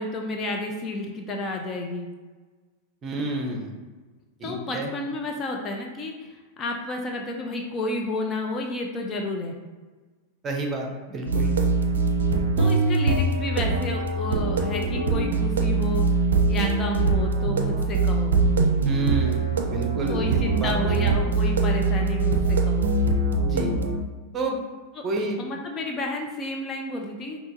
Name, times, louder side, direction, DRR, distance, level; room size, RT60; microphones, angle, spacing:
voice 1, 0.0-2.1 4.4-9.5 12.6-16.0 16.5-18.3 20.1-22.9 25.0-25.1 25.4-27.4, left 2 dB, 25° left, 1 dB, 0.6 m, -31 dB
voice 2, 3.0-3.7 4.4-4.9 10.4-11.5 18.8-21.1 23.4-23.7 24.3-24.6 25.0-25.4, right 2 dB, 25° right, 1 dB, 0.8 m, -30 dB
sound 1, 11.3-24.0, right 3 dB, 65° right, 0.5 m, -23 dB
5.5 x 2.9 x 2.8 m, 1.3 s
figure-of-eight pair, 90°, 0 cm